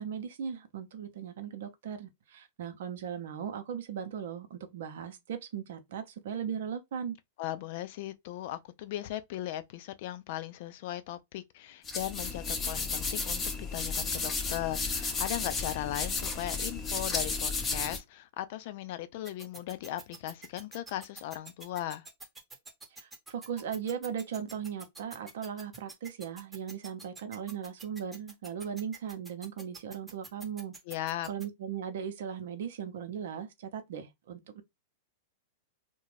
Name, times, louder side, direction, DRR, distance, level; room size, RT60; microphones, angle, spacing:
voice 1, 0.0-7.2 22.9-30.7 31.3-34.6, right 8 dB, 70° right, 0.7 m, -38 dB
voice 2, 7.4-22.1 30.9-31.3, left 13 dB, 55° left, 0.4 m, -38 dB
sound 1, 11.8-18.0, left 4 dB, 20° left, 0.7 m, -33 dB
sound 2, 19.2-31.4, right 2 dB, 10° right, 0.9 m, -47 dB
2.5 x 2.2 x 3.2 m
hypercardioid pair, 110°, 0 cm